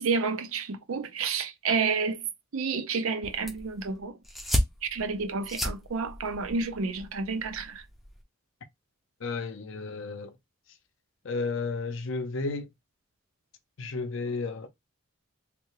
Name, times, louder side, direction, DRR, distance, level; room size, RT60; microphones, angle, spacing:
voice 1, 0.0-2.3 2.5-4.2 4.8-7.8, right 4 dB, 75° right, 0.5 m, -30 dB
sound 1, 3.2-8.2, equal, ahead, 0.5 m, -34 dB
voice 2, 9.2-10.3 11.2-12.7 13.8-14.7, left 3 dB, 60° left, 0.5 m, -32 dB
3.2 x 2.2 x 3.1 m
head